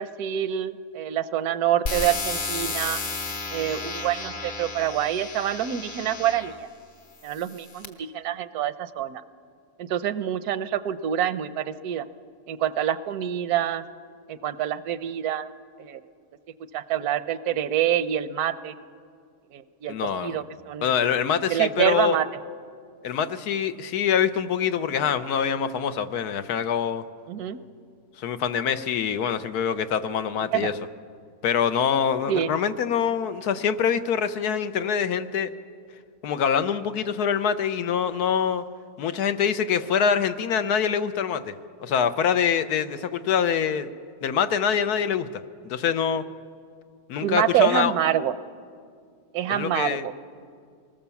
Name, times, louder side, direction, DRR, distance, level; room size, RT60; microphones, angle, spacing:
voice 1, 0.0-3.0 3.5-6.5 7.2-9.2 9.8-12.1 12.5-13.8 14.3-15.5 15.8-16.0 16.7-18.7 19.5-19.9 20.2-20.9 21.5-22.3 27.3-27.6 30.5-30.7 32.3-32.5 47.2-48.3 49.3-50.1, right 10 dB, 80° right, 13 dB, 1.2 m, -26 dB
sound 1, 1.9-6.6 7.3-7.9, left 4 dB, 65° left, 2.0 m, -32 dB
voice 2, 19.9-20.4 20.8-22.2 23.0-27.0 28.2-30.8 31.4-35.5 36.2-38.6 39.0-41.5 41.8-43.9 44.2-45.3 45.6-46.3 47.1-47.9 49.5-50.1, left 7 dB, 90° left, 11 dB, 1.4 m, -25 dB
24.5 x 19.5 x 7.1 m, 2.2 s
omnidirectional pair, 1.6 m